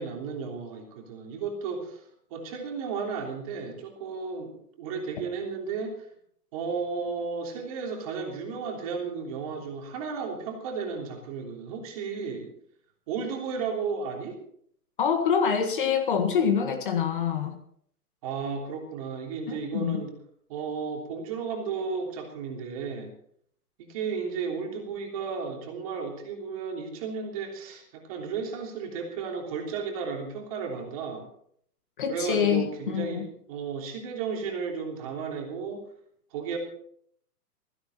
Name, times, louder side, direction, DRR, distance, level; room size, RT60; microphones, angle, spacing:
voice 1, 0.0-6.1 6.5-12.5 13.1-14.4 18.2-20.1 20.5-23.1 23.8-31.3 32.1-35.8 36.3-36.6, right 5 dB, 20° right, 2 dB, 3.2 m, -34 dB
voice 2, 15.0-17.6 19.5-20.0 32.0-33.3, left 7 dB, 30° left, 6 dB, 1.7 m, -26 dB
16.5 x 16.0 x 4.4 m, 0.64 s
hypercardioid pair, 175°, 47 cm